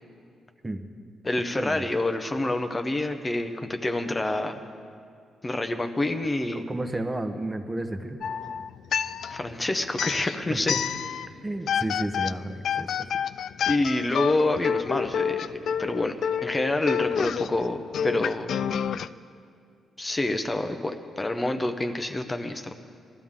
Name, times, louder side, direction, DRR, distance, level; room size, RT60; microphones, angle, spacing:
voice 1, 1.2-4.6 5.4-6.6 9.3-10.7 13.7-16.1 16.4-18.5 20.0-22.7, left 2 dB, 20° left, 6 dB, 0.8 m, -27 dB
voice 2, 6.5-8.2 10.5-10.8 11.4-12.9, right 1 dB, 15° right, 7 dB, 1.0 m, -32 dB
sound 1, 8.2-9.5 9.9-11.3 11.7-19.1, left 8 dB, 70° left, 0.3 m, -29 dB
19.5 x 13.5 x 3.7 m, 2.3 s
cardioid pair, 95°, 0 cm